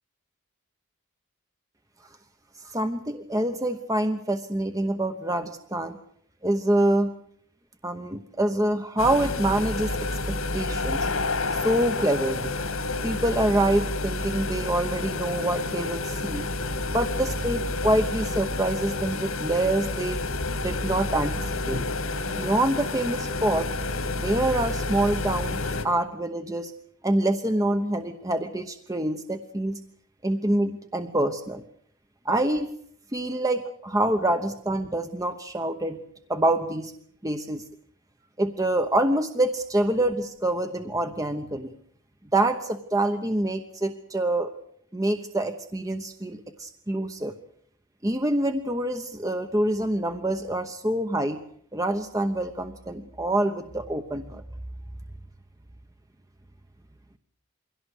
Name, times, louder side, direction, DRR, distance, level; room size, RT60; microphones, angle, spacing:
voice 1, 2.6-6.0 6.4-7.1 7.8-11.1 11.5-12.6 13.0-16.5 16.9-20.2 20.6-21.8 22.3-23.7 24.2-26.7 27.0-29.8 30.2-31.6 32.2-32.7 33.1-36.0 36.3-36.9 37.2-37.6 38.4-41.7 42.3-44.5 44.9-47.3 48.0-51.4 51.7-54.4, right 1 dB, 15° right, 7 dB, 1.0 m, -26 dB
sound 1, 9.0-25.8, left 2 dB, 80° left, 2.7 m, -29 dB
22.5 x 17.0 x 8.3 m, 0.64 s
head